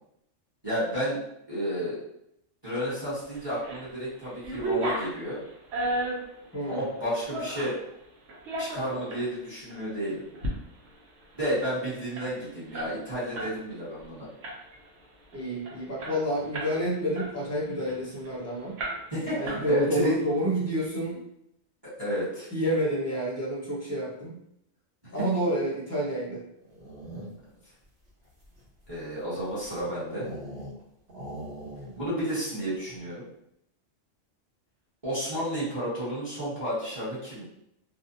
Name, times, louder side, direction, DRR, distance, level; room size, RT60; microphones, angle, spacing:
voice 1, 0.6-1.2 1.5-2.0 2.6-5.4 6.7-7.8 8.6-10.2 11.3-14.3 19.1-20.2 21.8-22.5 28.9-30.3 32.0-33.3 35.0-37.4, equal, 20° right, -10 dB, 0.9 m, -31 dB
sound 1, 3.3-3.9 4.2-7.8 8.3-9.2 9.7-9.8 10.2-10.5 10.8-10.9 11.2-13.5 13.9-14.1 14.4-14.9 15.3-15.4 15.7-16.8 17.1-18.3 18.8-19.2 19.4-20.1, right 1 dB, 85° right, 1.0 m, -34 dB
voice 2, 15.3-18.8 19.4-21.2 22.5-24.4 25.1-26.4, right 1 dB, 20° left, -6 dB, 0.5 m, -29 dB
sound 2, 26.6-27.6 28.2-30.8 31.1-32.2 32.4-32.5 32.8-33.2, right 1 dB, 60° right, 1.1 m, -42 dB
2.6 x 2.1 x 2.5 m, 0.77 s
omnidirectional pair, 1.3 m